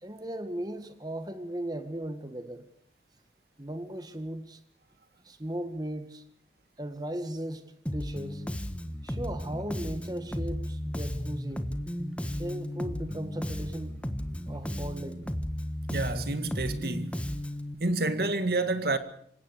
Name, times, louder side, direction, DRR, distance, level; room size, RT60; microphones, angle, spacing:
voice 1, 0.0-2.7 3.6-4.6 5.2-6.2 6.8-8.4 9.0-11.7 12.3-14.0 14.5-15.3, right 1 dB, 20° right, 1.8 m, -37 dB
Bass guitar, 7.9-17.7, equal, 5° left, 1.4 m, -34 dB
voice 2, 15.9-17.2 17.8-19.0, right 2 dB, 60° right, 1.8 m, -29 dB
27.5 x 17.0 x 6.7 m
head